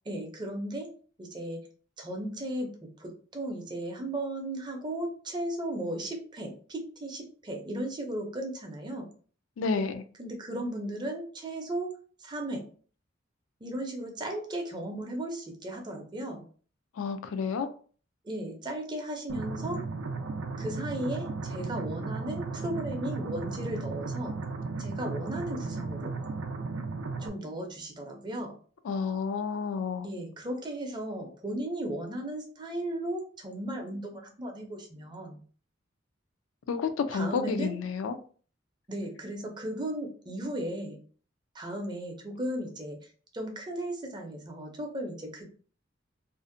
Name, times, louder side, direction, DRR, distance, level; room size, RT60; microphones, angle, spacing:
voice 1, 0.1-0.9 1.2-1.7 2.0-9.1 10.2-11.9 12.2-12.6 13.6-16.4 18.2-19.8 20.6-24.3 24.8-26.1 27.2-28.5 30.0-35.4 37.1-37.7 38.9-41.0 41.5-45.4, right 1 dB, 20° right, 0.5 m, -36 dB
voice 2, 9.6-10.0 17.0-17.7 28.8-30.1 36.7-38.2, left 5 dB, 85° left, 0.3 m, -30 dB
sound 1, 19.3-27.3, right 3 dB, 90° right, 0.4 m, -35 dB
2.5 x 2.1 x 2.5 m
head